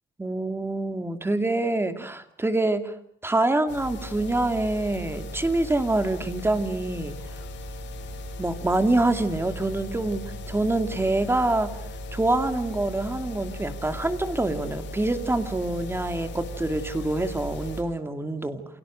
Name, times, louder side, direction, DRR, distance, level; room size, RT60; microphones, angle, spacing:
voice 1, 0.2-2.9 3.2-7.2 8.4-11.7 12.1-18.6, right 2 dB, 10° right, 9 dB, 2.5 m, -26 dB
sound 1, 3.7-17.8, left 1 dB, 75° left, 7.7 m, -37 dB
29.0 x 28.0 x 6.5 m, 0.62 s
cardioid pair, 140°, 19 cm